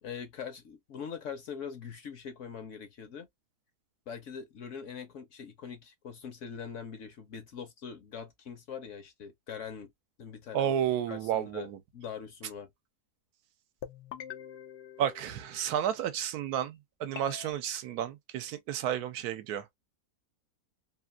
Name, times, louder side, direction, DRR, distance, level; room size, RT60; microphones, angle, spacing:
voice 1, 0.0-3.3 4.1-9.9 10.2-10.7 11.1-12.7, left 7 dB, 60° left, 0.9 m, -42 dB
voice 2, 10.5-11.8 15.0-19.8, right 10 dB, 80° right, 1.1 m, -32 dB
sound 1, 13.8-15.9 17.1-17.5, left 9 dB, 90° left, 0.5 m, -45 dB
3.0 x 2.4 x 2.2 m
omnidirectional pair, 1.7 m